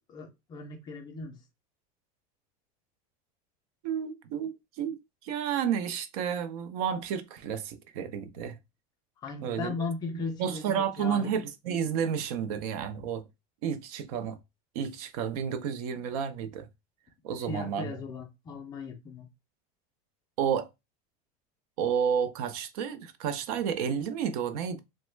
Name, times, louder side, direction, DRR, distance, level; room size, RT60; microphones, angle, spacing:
voice 1, 0.1-1.4 9.2-11.3 17.5-19.3, left 4 dB, 20° left, 0.4 m, -37 dB
voice 2, 3.8-8.6 9.4-9.7 10.4-13.2 13.6-14.4 14.7-16.7 17.2-17.9 20.4-20.7 21.8-24.8, right 7 dB, 80° right, 0.6 m, -31 dB
3.0 x 2.1 x 3.1 m
supercardioid pair, 170°, 19 cm